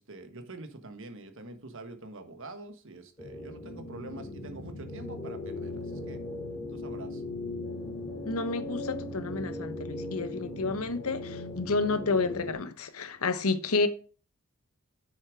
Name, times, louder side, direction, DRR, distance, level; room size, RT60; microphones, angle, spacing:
voice 1, 0.0-6.2 6.7-7.2, right 2 dB, 60° right, 1.5 m, -45 dB
sound 1, 3.2-12.5, left 2 dB, 15° left, 2.1 m, -38 dB
voice 2, 8.2-13.9, left 3 dB, 75° left, 1.0 m, -30 dB
7.0 x 6.7 x 5.0 m
head